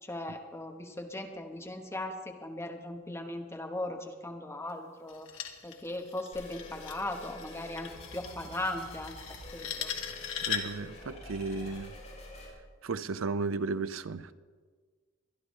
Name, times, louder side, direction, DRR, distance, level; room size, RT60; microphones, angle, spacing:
voice 1, 0.0-9.1 9.5-9.9, left 1 dB, 15° left, 3 dB, 1.2 m, -38 dB
sound 1, 5.1-10.9, left 8 dB, 80° left, 1.3 m, -39 dB
sound 2, 6.3-12.5, left 1 dB, 35° left, 5.1 m, -47 dB
voice 2, 10.5-11.9 12.8-14.3, right 4 dB, 90° right, 14 dB, 0.6 m, -34 dB
23.5 x 11.0 x 3.2 m, 1.5 s
head